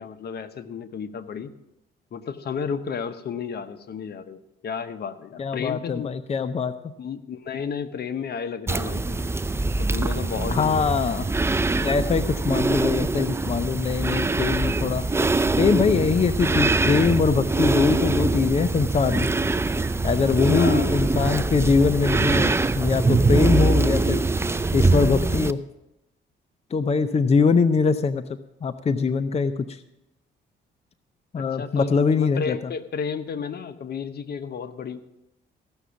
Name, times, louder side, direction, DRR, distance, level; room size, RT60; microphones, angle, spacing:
voice 1, 0.0-1.5 2.1-6.1 7.0-9.2 9.8-10.9 20.5-20.9 31.4-35.0, left 6 dB, 55° left, 11 dB, 0.9 m, -32 dB
voice 2, 5.4-6.9 10.5-11.2 11.8-15.0 15.6-19.3 20.0-24.2 24.7-25.6 26.7-28.2 28.6-29.8 31.3-32.6, left 5 dB, 30° left, 11 dB, 0.6 m, -22 dB
sound 1, 8.7-25.5, right 3 dB, 15° right, 0.4 m, -23 dB
15.0 x 6.2 x 7.0 m, 0.87 s
cardioid pair, 90°, 20 cm